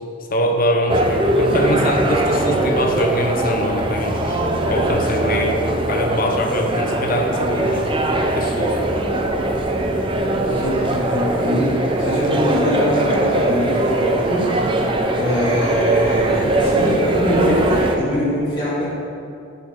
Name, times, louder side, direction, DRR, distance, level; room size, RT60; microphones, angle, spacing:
voice 1, 0.3-7.9 8.3-9.1, left 1 dB, 45° left, 4 dB, 0.8 m, -23 dB
sound 1, 0.9-18.0, right 1 dB, 25° right, 0.5 m, -20 dB
voice 2, 10.3-14.9 15.1-18.9, equal, 20° left, -10 dB, 2.3 m, -22 dB
10.0 x 5.6 x 4.4 m, 2.4 s
head